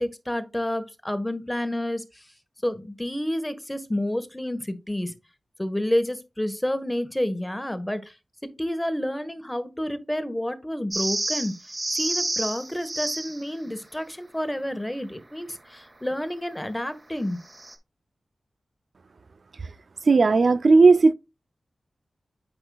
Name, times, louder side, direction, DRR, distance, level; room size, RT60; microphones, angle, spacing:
voice 1, 0.0-2.2 2.6-5.1 5.6-8.1 8.4-11.6 11.9-17.4, left 1 dB, 10° left, 1.4 m, -29 dB
sound 1, 10.9-13.4 17.5-17.7, right 2 dB, 35° right, 2.1 m, -29 dB
voice 2, 20.1-21.1, right 3 dB, 65° right, 0.5 m, -15 dB
8.6 x 6.3 x 2.4 m
cardioid pair, 55°, 0 cm